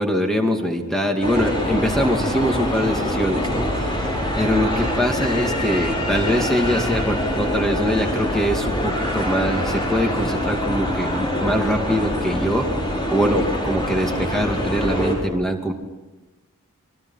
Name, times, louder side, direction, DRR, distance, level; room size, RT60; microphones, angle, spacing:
voice 1, 0.0-12.7 13.1-15.7, equal, ahead, 2 dB, 2.5 m, -23 dB
sound 1, 1.2-15.2, equal, 20° left, 6.0 m, -24 dB
28.5 x 24.0 x 5.8 m, 1.1 s
head